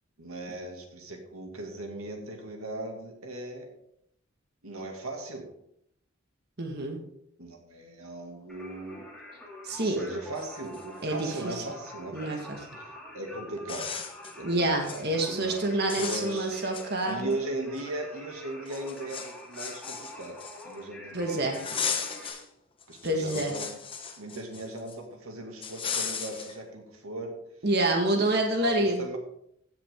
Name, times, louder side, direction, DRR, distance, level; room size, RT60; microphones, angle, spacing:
voice 1, 0.2-3.7 4.6-5.5 7.4-9.1 9.8-12.3 12.8-13.9 14.4-14.6 14.9-16.6 17.1-20.4 20.6-21.6 21.9-22.0 22.9-23.7 24.2-27.4 28.5-29.2, right 2 dB, 80° right, 2 dB, 2.4 m, -38 dB
voice 2, 6.6-7.0 9.6-10.0 11.0-11.6 12.1-12.6 14.4-17.3 21.1-21.6 23.0-23.6 27.6-29.0, right 1 dB, 50° right, 2 dB, 1.7 m, -27 dB
Singing, 8.5-22.3, left 1 dB, 5° left, 2.7 m, -46 dB
sound 1, 10.0-10.1 10.3-11.5 13.0-13.1 13.6-14.4 14.7-15.0 15.4-15.6 15.9-17.3 17.7-17.8 18.7-20.8 21.5-22.4 22.8-24.9 25.6-26.6, left 6 dB, 25° left, 1.1 m, -36 dB
16.0 x 7.5 x 3.7 m, 0.75 s
head